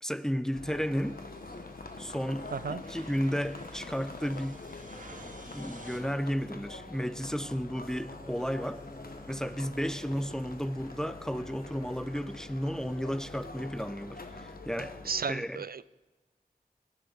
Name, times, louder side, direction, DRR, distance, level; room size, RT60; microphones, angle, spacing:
voice 1, 0.0-1.2 2.0-4.6 5.5-8.8 9.3-15.0 15.3-15.6, equal, 5° left, 0.7 m, -33 dB
sound 1, 0.5-15.2, left 3 dB, 75° left, 1.2 m, -45 dB
sound 2, 1.0-6.0, right 2 dB, 60° right, 2.0 m, -52 dB
voice 2, 2.5-2.8 15.1-15.8, right 5 dB, 75° right, 0.4 m, -33 dB
sound 3, 7.9-13.3, left 1 dB, 25° left, 4.0 m, -52 dB
26.0 x 11.0 x 4.0 m
wide cardioid pair, 50°, 15 cm